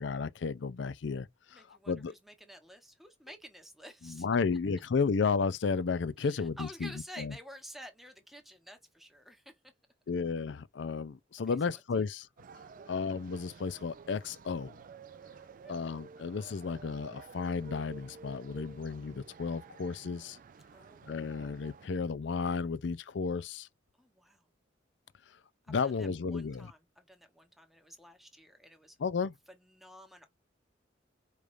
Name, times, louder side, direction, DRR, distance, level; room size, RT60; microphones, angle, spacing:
voice 1, 0.0-2.1 4.0-6.9 7.2-7.4 10.1-12.3 12.5-12.6 12.9-14.8 15.7-20.4 21.1-23.7 25.3-25.4 25.7-26.7 29.0-29.3, left 5 dB, 65° left, 0.4 m, -33 dB
voice 2, 1.5-4.3 6.2-9.5 11.5-12.0 12.8-13.0 15.6-15.8 20.7-21.2 24.0-24.5 26.0-29.0 29.5-30.3, equal, ahead, 0.9 m, -51 dB
sound 1, 12.4-21.9, right 5 dB, 45° right, 0.3 m, -52 dB
4.9 x 3.2 x 2.5 m
head